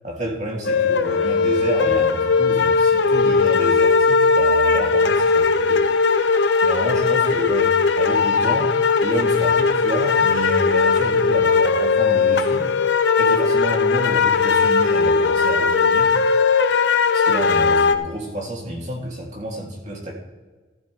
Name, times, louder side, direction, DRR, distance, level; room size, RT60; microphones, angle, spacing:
voice 1, 0.0-5.8 6.6-8.7 9.0-12.7 13.2-16.1 17.1-20.1, right 1 dB, 40° right, -2 dB, 2.6 m, -29 dB
sound 1, 0.6-17.9, left 5 dB, 80° left, 0.7 m, -18 dB
15.0 x 10.5 x 3.3 m, 1.4 s
head